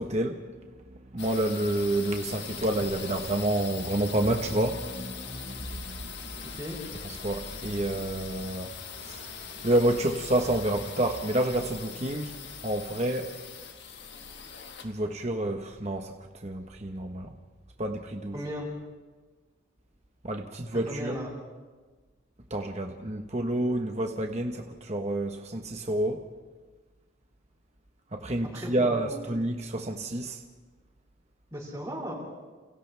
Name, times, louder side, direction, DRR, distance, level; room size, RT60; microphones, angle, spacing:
voice 1, 0.0-6.6 7.0-13.3 14.8-17.3 17.8-18.4 20.2-21.2 22.5-26.2 28.1-30.4, right 1 dB, 35° right, 3 dB, 1.2 m, -29 dB
sound 1, 1.2-16.8, left 7 dB, 60° left, 1.8 m, -42 dB
voice 2, 18.3-18.7 20.9-21.3 28.5-29.2 31.5-32.1, equal, 15° right, -6 dB, 6.8 m, -36 dB
29.5 x 29.0 x 3.4 m, 1.3 s
head